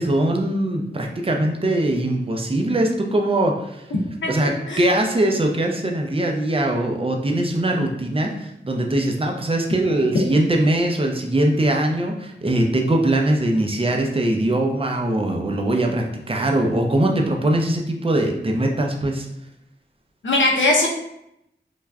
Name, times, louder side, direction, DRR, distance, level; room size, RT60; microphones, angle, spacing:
voice 1, 0.0-3.8 4.3-19.3, right 1 dB, 30° right, 2 dB, 0.5 m, -21 dB
voice 2, 4.2-4.8 20.2-20.9, left 2 dB, 90° left, -1 dB, 0.6 m, -20 dB
3.3 x 2.4 x 2.2 m, 0.81 s
wide cardioid pair, 60°, 19 cm